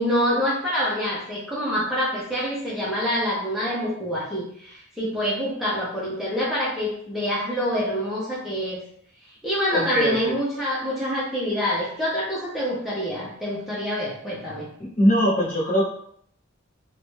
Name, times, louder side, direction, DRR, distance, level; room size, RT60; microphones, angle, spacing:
voice 1, 0.0-8.8 9.4-14.7, equal, ahead, -7 dB, 0.5 m, -26 dB
voice 2, 9.7-10.3 14.8-15.8, equal, 35° left, -4 dB, 0.8 m, -21 dB
2.4 x 2.0 x 3.2 m, 0.66 s
head